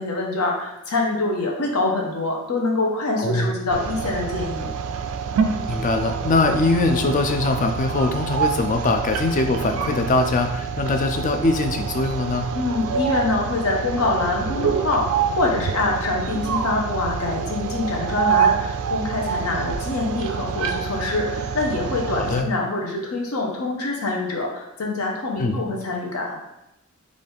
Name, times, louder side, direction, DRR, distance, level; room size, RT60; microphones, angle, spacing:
voice 1, 0.0-4.7 12.5-26.4, left 2 dB, 65° left, -1 dB, 0.7 m, -25 dB
voice 2, 3.2-3.5 5.7-12.5 22.1-22.5 25.4-25.6, left 2 dB, 35° left, 5 dB, 0.4 m, -22 dB
sound 1, 3.7-22.4, right 6 dB, 65° right, 0.3 m, -27 dB
3.8 x 2.4 x 3.4 m, 0.88 s
head